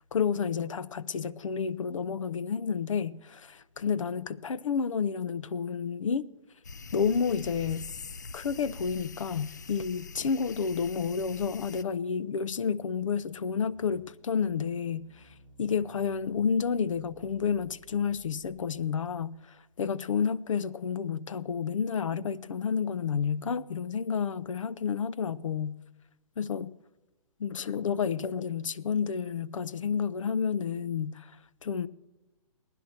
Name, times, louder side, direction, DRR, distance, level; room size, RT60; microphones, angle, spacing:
voice 1, 0.0-6.3 6.9-7.9 8.3-15.1 15.6-25.8 26.4-26.7 27.4-31.3 31.6-31.9, left 6 dB, 70° left, 0.7 m, -30 dB
sound 1, 6.6-11.8, left 4 dB, 35° left, 0.3 m, -44 dB
sound 2, 10.5-19.2, right 2 dB, 5° left, 1.2 m, -59 dB
17.0 x 11.0 x 4.3 m
hypercardioid pair, 180°, 17 cm